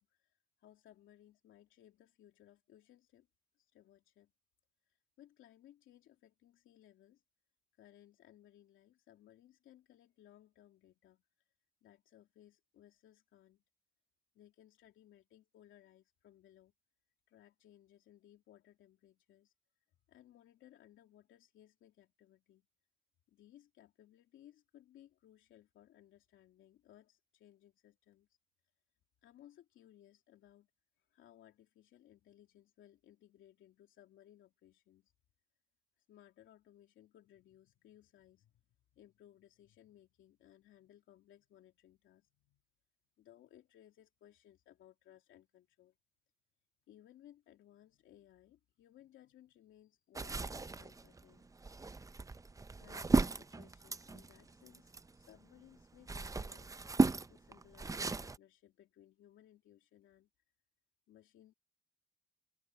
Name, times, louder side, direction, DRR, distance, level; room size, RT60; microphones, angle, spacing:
voice 1, 0.0-3.3 3.6-4.3 4.9-7.2 7.7-11.2 11.8-13.6 14.3-16.7 17.3-19.5 20.1-22.7 23.3-28.3 29.2-30.7 31.0-35.1 36.0-38.6 38.9-42.6 43.2-45.9 46.9-51.5 52.8-56.7 57.3-60.3 61.1-61.5, left 12 dB, 80° left, 2.7 m, -63 dB
sound 1, 50.2-55.4 55.8-58.4, right 3 dB, 15° right, 0.6 m, -35 dB
cardioid pair, 90°, 20 cm